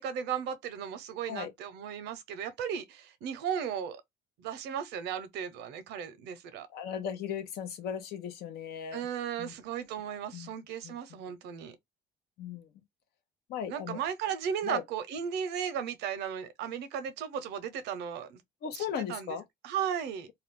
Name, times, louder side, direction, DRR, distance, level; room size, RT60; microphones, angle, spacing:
voice 1, 0.0-4.0 4.4-6.7 8.9-11.8 13.7-18.4 18.7-19.4 19.6-20.3, right 8 dB, 85° right, 0.7 m, -35 dB
voice 2, 6.7-9.0 9.4-9.5 10.3-10.5 10.8-10.9 12.4-12.7 13.5-14.0 14.6-14.8 18.6-19.4, left 8 dB, 75° left, 0.7 m, -37 dB
2.4 x 2.3 x 3.6 m
cardioid pair, 110°, 17 cm